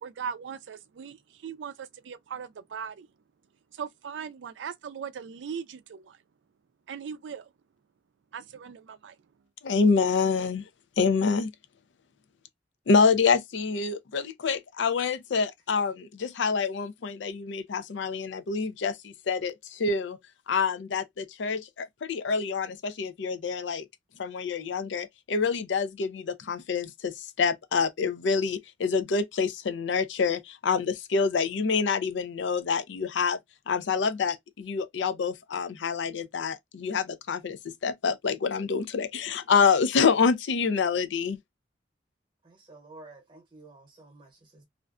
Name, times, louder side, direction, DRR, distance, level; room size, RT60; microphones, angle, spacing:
voice 1, 0.0-3.1 3.7-6.2 6.9-7.5 8.3-9.2, right 7 dB, 80° right, 0.4 m, -39 dB
voice 2, 9.6-10.7 11.0-11.5 12.9-20.2 20.5-23.8 24.2-33.4 33.7-41.4, left 5 dB, 80° left, 0.4 m, -27 dB
voice 3, 42.4-44.6, right 2 dB, 25° right, 0.9 m, -51 dB
2.4 x 2.2 x 2.3 m
head